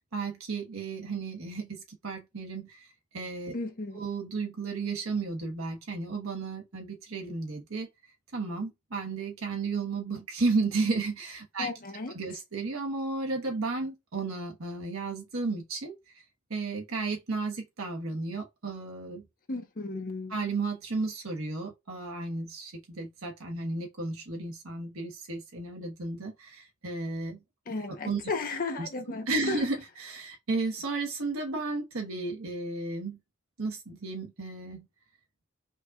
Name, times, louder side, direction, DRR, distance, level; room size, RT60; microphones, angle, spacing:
voice 1, 0.0-2.8 3.1-3.5 3.9-7.9 8.3-11.7 12.1-15.9 16.5-19.3 20.3-27.4 28.0-28.2 28.8-28.9 29.3-33.2 33.6-34.9, right 3 dB, 85° right, 1.2 m, -33 dB
voice 2, 3.5-4.0 11.6-12.1 19.5-20.4 27.7-29.6, left 3 dB, 45° left, 0.8 m, -34 dB
5.1 x 2.7 x 2.3 m
head